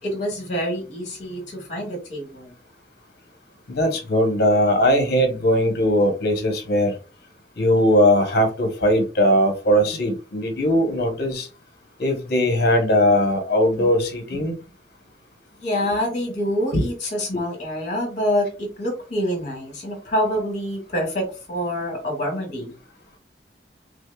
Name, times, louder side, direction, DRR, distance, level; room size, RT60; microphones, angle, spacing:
voice 1, 0.0-2.5 13.8-13.9 15.6-22.7, equal, 45° left, 1.7 m, -26 dB
voice 2, 3.7-6.9 7.6-11.5 12.0-14.5 16.7-16.8 17.3-17.4, equal, 60° left, 1.0 m, -19 dB
6.1 x 2.1 x 2.3 m
head